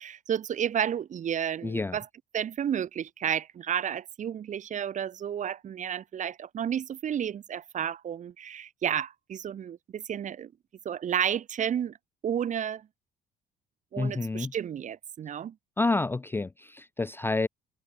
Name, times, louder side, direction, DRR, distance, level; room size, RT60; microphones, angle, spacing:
voice 1, 0.0-2.1 2.3-10.5 10.8-12.0 12.2-12.9 13.9-15.6, right 9 dB, 50° right, 2.1 m, -31 dB
voice 2, 1.6-2.0 14.0-14.5 15.8-17.5, left 3 dB, 15° left, 0.4 m, -29 dB
cardioid pair, 110°, 17 cm